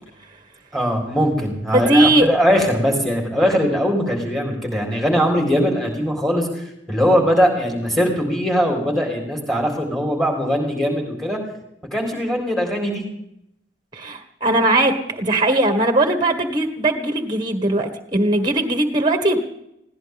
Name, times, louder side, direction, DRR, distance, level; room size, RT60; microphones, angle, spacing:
voice 1, 0.7-11.4 11.9-13.0, equal, ahead, 2 dB, 3.9 m, -20 dB
voice 2, 1.7-2.3 13.9-19.4, right 1 dB, 20° right, 7 dB, 1.8 m, -19 dB
21.0 x 17.0 x 3.6 m, 0.79 s
head